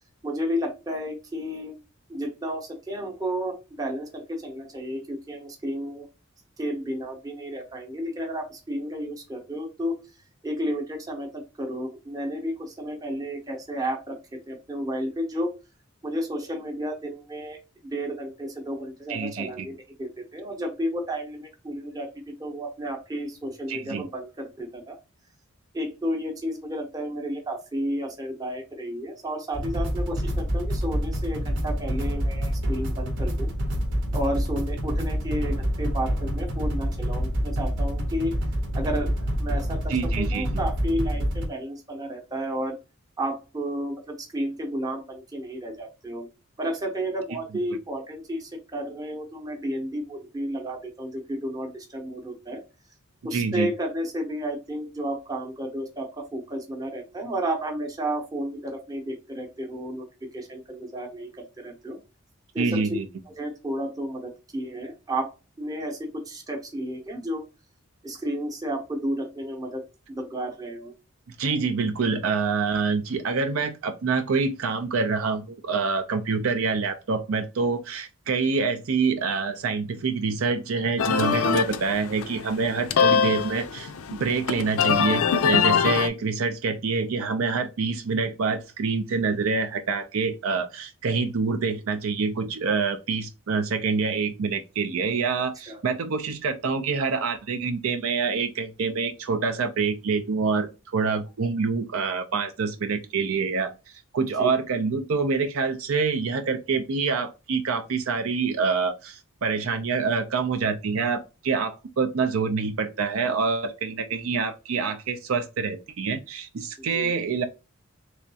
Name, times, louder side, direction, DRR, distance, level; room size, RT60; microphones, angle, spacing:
voice 1, 0.2-1.8 2.1-6.1 6.6-10.0 10.4-15.5 16.0-25.0 25.7-33.5 34.1-38.4 38.7-42.8 43.2-46.3 46.6-52.6 53.2-60.0 60.3-62.0 62.5-62.9 63.4-65.3 65.6-67.4 68.0-69.8 70.1-70.9 95.7-95.8 104.4-104.5 116.8-117.2, equal, 15° right, 0.8 m, -32 dB
voice 2, 19.1-19.7 23.7-24.0 39.9-40.5 53.3-53.7 62.6-63.1 71.4-100.7 100.9-103.7 104.1-117.4, right 4 dB, 75° right, 0.5 m, -26 dB
sound 1, 29.5-41.5, equal, 55° right, 0.8 m, -27 dB
sound 2, 81.0-86.1, left 7 dB, 85° left, 0.4 m, -23 dB
3.4 x 3.0 x 2.7 m
head